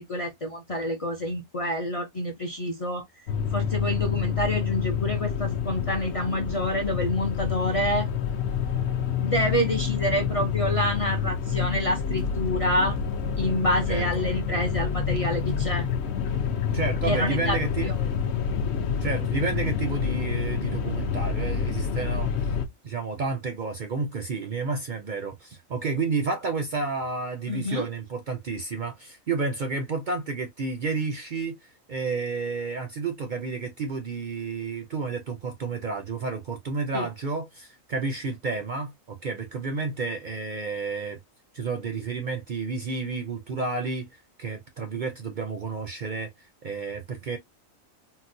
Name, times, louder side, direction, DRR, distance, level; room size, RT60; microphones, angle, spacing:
voice 1, 0.0-3.0 3.5-8.1 9.2-13.0 13.4-15.9 17.0-17.6 17.8-17.9 27.5-27.9 36.9-37.1, left 1 dB, 45° left, 0.4 m, -27 dB
sound 1, 3.3-22.7, left 7 dB, 65° left, 0.8 m, -28 dB
voice 2, 13.9-14.3 16.7-17.9 19.0-22.3 22.8-41.2 41.5-47.4, right 4 dB, 60° right, 0.5 m, -31 dB
3.9 x 2.1 x 2.6 m
omnidirectional pair, 1.4 m